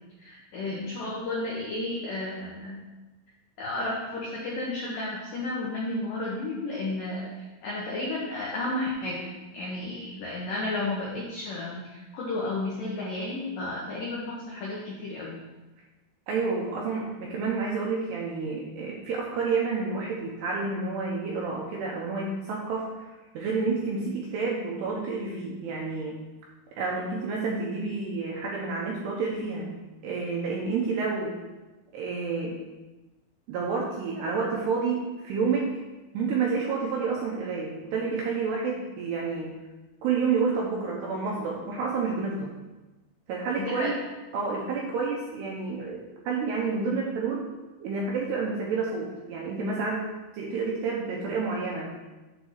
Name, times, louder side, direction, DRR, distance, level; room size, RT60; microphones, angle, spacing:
voice 1, 0.2-2.8 3.6-7.3 7.6-11.8 12.1-15.4 43.6-43.9, left 2 dB, 80° left, -5 dB, 1.9 m, -32 dB
voice 2, 16.3-23.1 23.3-26.2 26.8-29.8 30.0-31.4 31.9-32.6 33.5-35.7 36.1-39.5 40.0-42.5 43.3-44.0 44.3-47.4 47.8-50.1 50.3-51.9, right 4 dB, 75° right, -3 dB, 2.5 m, -29 dB
8.1 x 4.0 x 6.3 m, 1.1 s
omnidirectional pair, 5.7 m